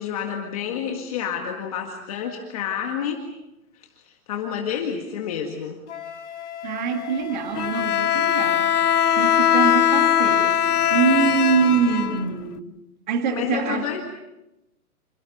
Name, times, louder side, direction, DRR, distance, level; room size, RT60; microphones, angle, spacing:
voice 1, 0.0-3.2 3.8-5.8 13.3-14.0, left 8 dB, 25° left, 2 dB, 1.9 m, -29 dB
Wind instrument woodwind instrument, 5.9-10.4, left 9 dB, 50° left, 2.5 m, -39 dB
voice 2, 6.6-8.7 9.2-12.7 13.1-13.9, right 6 dB, 30° right, 5 dB, 2.1 m, -24 dB
Bowed string instrument, 7.5-12.6, left 9 dB, 85° left, 1.2 m, -20 dB
29.0 x 27.5 x 5.4 m, 0.92 s
hypercardioid pair, 180°, 45 cm